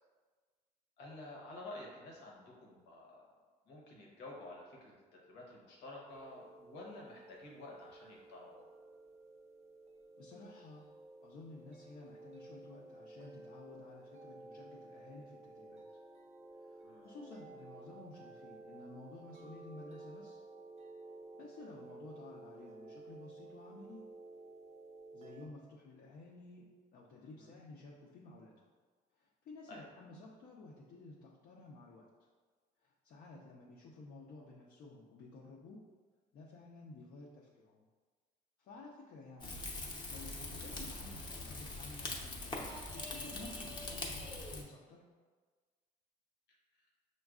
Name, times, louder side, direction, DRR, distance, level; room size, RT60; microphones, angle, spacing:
voice 1, 1.0-3.3 3.7-4.9 5.3-8.7 16.8-17.1 27.2-27.6 29.7-29.8, left 2 dB, 90° left, -2 dB, 1.0 m, -51 dB
sound 1, 6.1-25.5, right 2 dB, 40° right, 0.5 m, -54 dB
voice 2, 10.2-10.8 11.2-15.8 16.6-20.4 21.4-24.0 25.1-28.7 29.2-32.1 32.8-35.8 36.3-37.8 38.6-39.7 40.1-45.1, left 3 dB, 60° left, -4 dB, 0.6 m, -53 dB
Rain / Fire, 39.4-44.6, left 2 dB, 25° left, 0.7 m, -43 dB
6.1 x 2.3 x 2.4 m, 1.4 s
cardioid pair, 110°, 17 cm